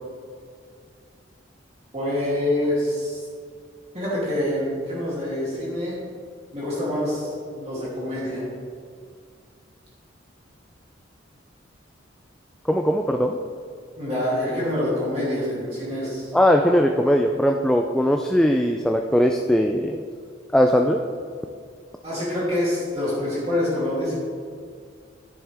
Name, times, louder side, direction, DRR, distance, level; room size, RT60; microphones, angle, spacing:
voice 1, 1.9-3.2 3.9-6.0 6.5-8.4 14.0-16.3 22.0-24.1, left 1 dB, 35° right, -8 dB, 2.8 m, -26 dB
voice 2, 12.7-13.4 16.3-20.0 20.5-21.0, equal, 5° left, 3 dB, 0.3 m, -19 dB
10.0 x 10.0 x 3.5 m, 2.1 s
head